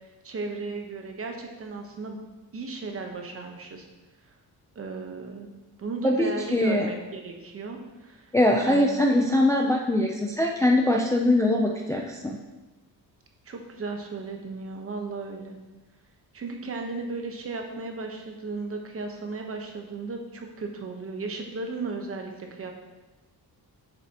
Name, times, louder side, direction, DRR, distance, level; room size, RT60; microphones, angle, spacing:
voice 1, 0.2-2.2 2.5-3.9 4.7-5.5 5.8-8.9 13.5-15.6 16.3-22.7, right 3 dB, 35° right, 3 dB, 1.0 m, -35 dB
voice 2, 6.0-6.9 8.3-12.4, left 1 dB, 10° left, 0 dB, 0.4 m, -22 dB
8.9 x 6.8 x 2.9 m, 1.1 s
wide cardioid pair, 155°, 38 cm